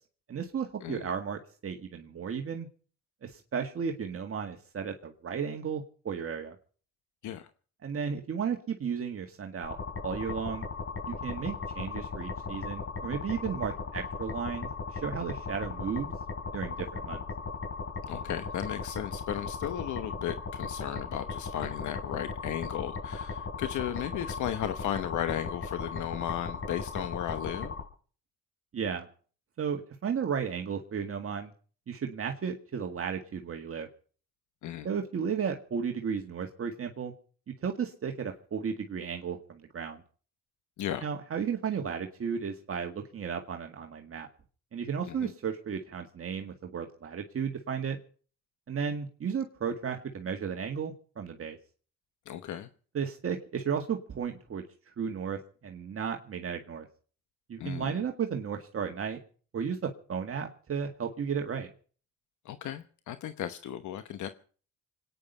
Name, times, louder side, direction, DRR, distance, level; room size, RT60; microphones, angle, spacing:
voice 1, 0.3-2.7 3.2-6.6 7.8-9.8 10.0-10.7 11.1-16.1 16.5-17.2 28.7-29.1 29.6-31.5 31.9-33.9 34.8-37.1 37.6-40.0 41.0-44.3 44.7-48.0 48.7-51.6 52.9-54.6 55.0-56.9 57.5-59.2 59.5-61.7, right 7 dB, 50° right, 1.8 m, -34 dB
sound 1, 9.6-27.8, left 4 dB, 45° left, 4.9 m, -37 dB
voice 2, 18.1-27.7 34.6-34.9 40.8-41.0 45.2-45.3 52.3-52.7 57.6-57.9 62.4-64.3, left 11 dB, 75° left, 1.0 m, -35 dB
26.0 x 9.7 x 5.5 m
cardioid pair, 90°, 30 cm